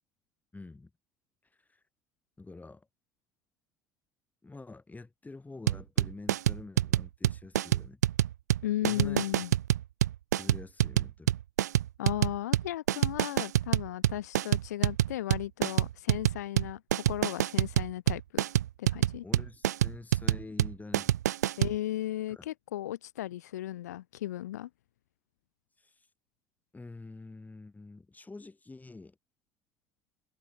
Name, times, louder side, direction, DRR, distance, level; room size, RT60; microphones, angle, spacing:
voice 1, 0.5-0.9 1.7-1.8 2.4-2.9 4.4-8.0 8.8-9.3 10.3-11.3 19.2-21.1 22.3-22.5 25.8-26.1 26.7-29.2, left 3 dB, 20° left, 7.1 m, -47 dB
sound 1, 5.7-21.8, right 12 dB, 80° right, 0.5 m, -27 dB
voice 2, 8.6-9.5 12.0-18.4 18.8-19.2 21.6-24.7, left 13 dB, 80° left, 2.5 m, -35 dB
figure-of-eight pair, 55°, 9 cm